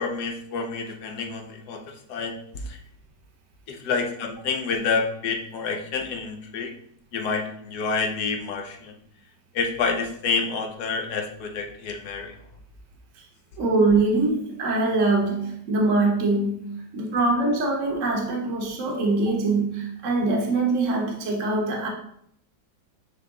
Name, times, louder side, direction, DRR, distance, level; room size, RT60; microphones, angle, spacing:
voice 1, 0.0-1.8 2.1-2.3 2.7-2.8 3.7-6.7 7.1-8.9 9.5-12.3, left 4 dB, 65° left, 4 dB, 1.4 m, -28 dB
voice 2, 13.6-21.9, right 3 dB, 45° right, -2 dB, 1.4 m, -23 dB
8.7 x 3.4 x 3.7 m, 0.69 s
omnidirectional pair, 2.0 m